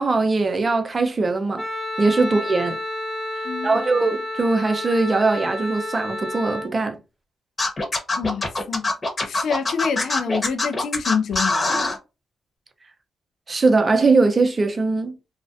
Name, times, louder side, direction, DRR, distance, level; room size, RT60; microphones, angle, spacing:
voice 1, 0.0-1.6 2.0-2.8 3.6-7.0 13.5-15.1, right 3 dB, 40° right, 0.6 m, -20 dB
Wind instrument woodwind instrument, 1.6-6.7, left 1 dB, 5° left, 0.9 m, -30 dB
voice 2, 3.4-3.9 8.2-8.9 9.3-11.8, left 6 dB, 70° left, 0.4 m, -27 dB
Scratching (performance technique), 7.6-12.0, left 2 dB, 35° left, 1.0 m, -23 dB
2.4 x 2.1 x 2.6 m
supercardioid pair, 50°, 0 cm